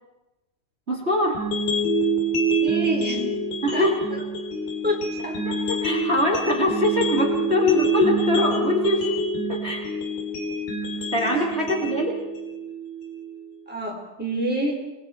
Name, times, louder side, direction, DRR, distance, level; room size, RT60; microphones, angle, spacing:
voice 1, 0.9-1.4 3.6-4.0 5.4-9.1 9.5-9.9 11.1-12.2, left 1 dB, 20° right, 0 dB, 2.2 m, -23 dB
sound 1, 1.3-13.4, right 2 dB, 80° left, 4.9 m, -26 dB
voice 2, 2.6-3.3 3.7-3.9 4.8-5.4 11.3-11.5 13.7-14.8, right 1 dB, 5° right, -1 dB, 3.8 m, -27 dB
28.0 x 20.5 x 4.5 m, 1.1 s
omnidirectional pair, 3.9 m